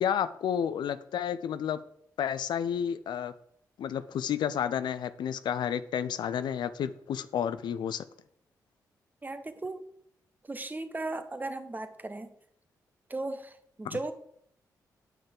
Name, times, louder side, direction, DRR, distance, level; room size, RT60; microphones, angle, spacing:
voice 1, 0.0-1.8 2.2-3.3 3.8-8.1 13.8-14.0, left 9 dB, 75° left, 14 dB, 0.4 m, -31 dB
voice 2, 9.2-9.8 10.5-12.3 13.1-14.1, right 2 dB, 25° right, 10 dB, 0.9 m, -36 dB
8.7 x 5.5 x 3.7 m, 0.70 s
supercardioid pair, 50°, 8 cm